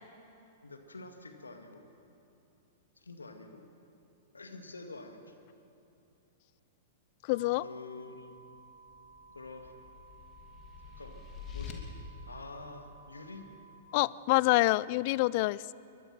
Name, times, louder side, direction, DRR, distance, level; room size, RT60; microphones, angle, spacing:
voice 1, 0.6-1.9 3.0-3.7 4.3-5.4 7.6-8.4 9.3-9.7 10.8-11.9 12.2-13.5, left 3 dB, 85° left, 5 dB, 2.0 m, -47 dB
voice 2, 7.3-7.6 13.9-15.7, left 20 dB, 50° left, 21 dB, 0.4 m, -26 dB
sound 1, 7.3-13.8, right 3 dB, 85° right, 4.3 m, -56 dB
sound 2, 8.9-11.7, left 8 dB, 30° left, 2.8 m, -46 dB
22.5 x 21.5 x 6.0 m, 2.8 s
figure-of-eight pair, 105°, 0 cm